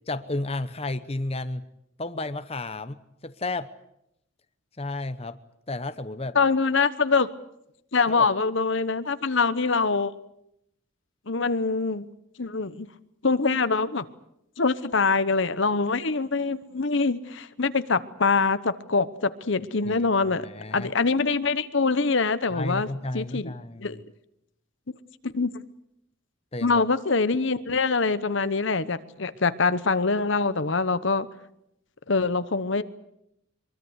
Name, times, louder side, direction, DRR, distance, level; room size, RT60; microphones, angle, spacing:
voice 1, 0.0-1.6 2.0-3.7 4.8-5.4 5.7-6.4 8.1-8.3 19.8-20.0 20.4-20.9 22.5-24.0 26.5-26.8, left 2 dB, 30° left, 0.9 m, -32 dB
voice 2, 6.3-7.3 7.9-10.1 11.3-12.1 12.4-12.9 13.2-14.1 14.6-20.5 20.7-22.9 23.1-23.5 23.8-24.0 24.9-25.0 25.3-25.6 26.6-31.3 32.1-32.8, left 4 dB, 60° left, 1.1 m, -24 dB
23.5 x 23.5 x 8.1 m
head